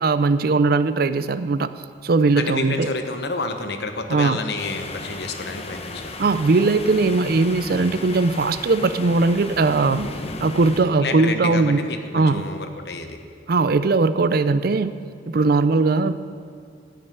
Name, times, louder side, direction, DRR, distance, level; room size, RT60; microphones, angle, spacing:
voice 1, 0.0-1.7 2.0-2.9 4.1-4.4 6.2-10.1 10.4-11.8 12.1-12.5 13.5-14.9 15.3-16.2, right 3 dB, 55° right, 13 dB, 0.5 m, -19 dB
voice 2, 2.4-6.1 11.0-13.2, left 3 dB, 65° left, 6 dB, 1.1 m, -29 dB
sound 1, 4.6-10.8, left 2 dB, 35° left, 1.0 m, -35 dB
14.0 x 6.4 x 9.2 m, 2.3 s
head